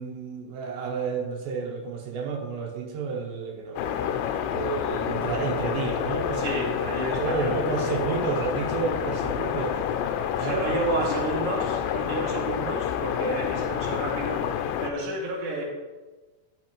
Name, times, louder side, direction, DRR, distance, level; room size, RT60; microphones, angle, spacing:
voice 1, 0.0-4.1 4.5-6.6 7.0-9.8 10.3-11.0, right 5 dB, 80° right, 1 dB, 3.1 m, -31 dB
sound 1, 3.8-14.9, left 9 dB, 90° left, 2.8 m, -28 dB
voice 2, 6.3-7.5 10.4-14.5 14.8-15.6, right 2 dB, 40° right, -4 dB, 2.5 m, -31 dB
12.0 x 6.6 x 3.1 m, 1.2 s
omnidirectional pair, 5.0 m